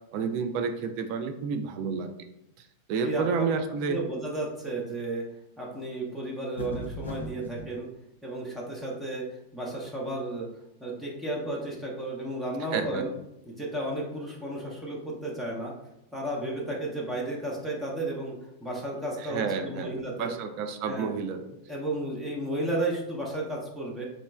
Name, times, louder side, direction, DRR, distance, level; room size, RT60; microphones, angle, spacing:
voice 1, 0.1-2.1 2.6-4.0 12.7-13.0 19.2-19.9 20.2-21.4, right 5 dB, 45° right, 7 dB, 0.3 m, -30 dB
voice 2, 3.0-3.5 3.9-5.2 5.6-7.9 8.2-9.2 9.5-10.5 10.8-13.1 13.5-15.7 16.1-18.3 18.6-20.3 20.9-21.1 21.7-24.0, right 1 dB, 5° right, -4 dB, 0.7 m, -33 dB
sound 1, 6.6-7.7, left 1 dB, 70° left, 0.4 m, -37 dB
3.8 x 3.0 x 2.3 m, 0.86 s
figure-of-eight pair, 90°, 0 cm